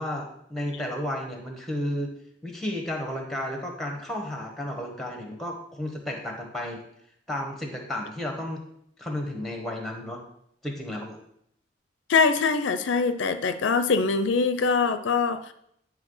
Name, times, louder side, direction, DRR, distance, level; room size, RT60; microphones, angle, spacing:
voice 1, 0.0-2.1 2.4-6.8 7.3-8.6 9.0-10.2 10.6-11.2, left 1 dB, ahead, 2 dB, 1.1 m, -32 dB
voice 2, 12.1-15.5, left 4 dB, 75° left, 10 dB, 0.4 m, -23 dB
9.5 x 3.2 x 5.5 m, 0.73 s
head